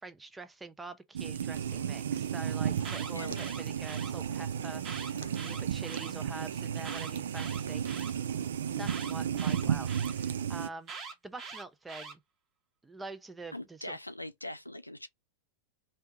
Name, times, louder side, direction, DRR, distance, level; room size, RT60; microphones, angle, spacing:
voice 1, 0.0-7.9 8.8-12.2 12.8-14.0, right 3 dB, 10° right, 0.6 m, -46 dB
sound 1, 1.1-10.7, right 9 dB, 65° right, 0.4 m, -33 dB
sound 2, 2.3-10.2, left 8 dB, 55° left, 0.8 m, -56 dB
Alarm, 2.7-4.1 4.8-6.1 6.8-8.1 8.9-10.1 10.9-12.1, right 5 dB, 30° right, 1.2 m, -43 dB
voice 2, 3.1-3.5 13.5-15.1, left 1 dB, 85° left, 0.4 m, -42 dB
3.2 x 2.8 x 3.5 m
figure-of-eight pair, 90°, 0 cm